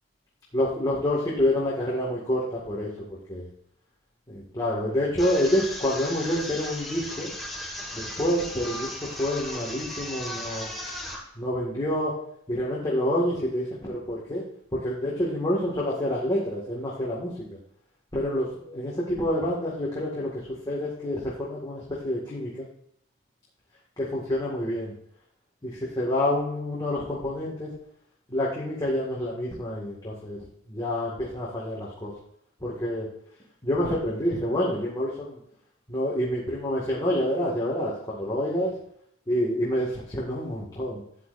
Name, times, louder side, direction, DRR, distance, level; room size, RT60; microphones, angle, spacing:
voice 1, 0.5-2.9 3.3-3.5 4.3-7.3 7.9-10.7 11.4-12.1 12.5-14.4 14.7-17.3 18.1-22.7 24.0-24.9 25.6-27.7 28.3-32.1 32.6-33.1 33.6-35.4 35.9-38.7 39.3-41.0, left 1 dB, 20° left, -6 dB, 2.0 m, -28 dB
sound 1, 5.2-11.2, left 1 dB, ahead, 1.8 m, -36 dB
12.5 x 9.0 x 2.6 m, 0.70 s
head